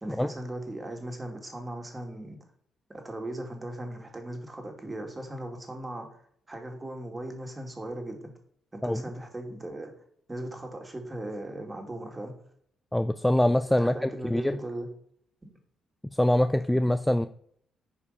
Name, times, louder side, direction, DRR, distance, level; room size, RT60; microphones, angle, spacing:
voice 1, 0.0-2.4 2.9-6.1 6.5-8.3 8.7-10.0 10.3-12.4 13.8-14.9 17.1-17.2, right 1 dB, 20° right, 3 dB, 2.4 m, -38 dB
voice 2, 12.9-14.6 16.1-17.3, left 1 dB, 5° left, 10 dB, 0.4 m, -24 dB
9.5 x 5.0 x 5.6 m, 0.65 s
cardioid pair, 90°, 0 cm